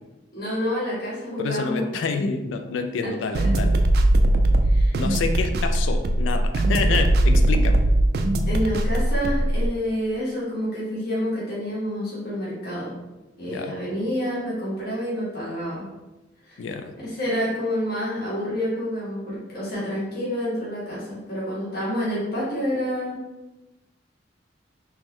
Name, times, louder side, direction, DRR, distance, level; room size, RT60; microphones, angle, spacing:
voice 1, 0.3-1.9 3.0-3.1 4.6-5.0 8.5-13.0 13.4-15.9 16.5-16.6 17.2-23.2, equal, 55° left, -8 dB, 1.4 m, -28 dB
voice 2, 1.4-3.8 4.9-7.8 13.5-13.8 16.6-16.9, left 4 dB, 75° left, 7 dB, 0.3 m, -28 dB
sound 1, 3.3-9.7, right 1 dB, 55° right, 0.3 m, -20 dB
3.5 x 3.0 x 3.1 m, 1.0 s
head